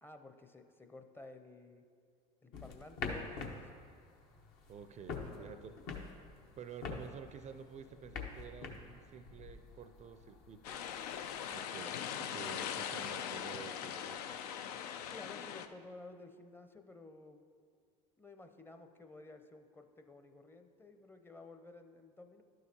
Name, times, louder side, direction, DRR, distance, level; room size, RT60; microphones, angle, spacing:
voice 1, 0.0-1.8 2.4-3.7 5.2-5.5 15.1-17.5 18.2-22.4, left 2 dB, 10° left, 7 dB, 0.6 m, -54 dB
sound 1, 2.5-11.6, left 4 dB, 65° left, 1.1 m, -46 dB
voice 2, 4.7-5.7 6.6-10.8 11.5-14.4, right 7 dB, 35° right, 10 dB, 0.4 m, -50 dB
sound 2, 10.6-15.7, left 8 dB, 80° left, 0.4 m, -41 dB
12.0 x 6.4 x 2.8 m, 2.2 s
hypercardioid pair, 80°, 20 cm